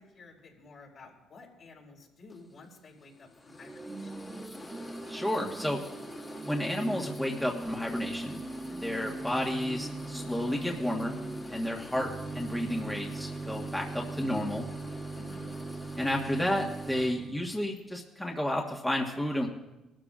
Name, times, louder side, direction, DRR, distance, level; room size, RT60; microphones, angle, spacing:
voice 1, 0.0-4.2 15.1-15.5, left 3 dB, 60° left, -2 dB, 4.5 m, -52 dB
sound 1, 2.3-17.8, left 2 dB, 25° left, 2.1 m, -47 dB
Organ / Church bell, 3.6-17.7, right 3 dB, 25° right, 0.7 m, -40 dB
voice 2, 5.1-5.8 6.5-8.4 8.8-11.1 11.5-14.7 16.0-19.5, left 1 dB, 10° left, -1 dB, 1.5 m, -31 dB
20.5 x 12.5 x 2.5 m, 1.0 s
supercardioid pair, 70°, 0 cm